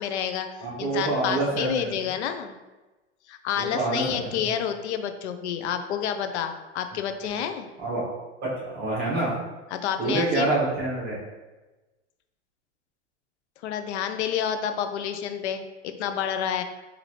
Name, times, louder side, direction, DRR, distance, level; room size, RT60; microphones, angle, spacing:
voice 1, 0.0-2.6 3.3-7.7 9.7-10.5 13.6-16.6, left 8 dB, 65° left, 8 dB, 0.5 m, -29 dB
voice 2, 0.6-2.0 3.6-4.5 7.8-8.0 8.4-9.3 10.0-11.2, right 2 dB, 25° right, -6 dB, 1.3 m, -27 dB
4.2 x 2.6 x 2.9 m, 1.1 s
supercardioid pair, 140°, 36 cm